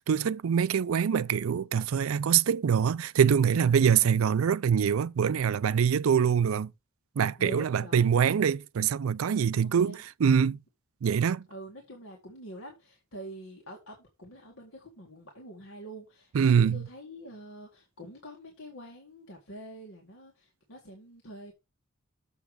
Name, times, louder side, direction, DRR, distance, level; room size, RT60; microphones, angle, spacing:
voice 1, 0.0-6.7 7.2-10.6 11.0-11.5 16.3-16.9, right 7 dB, 80° right, 0.4 m, -24 dB
voice 2, 7.4-8.2 9.6-10.0 11.5-21.5, equal, 80° left, 2.0 m, -46 dB
7.3 x 5.8 x 5.0 m
head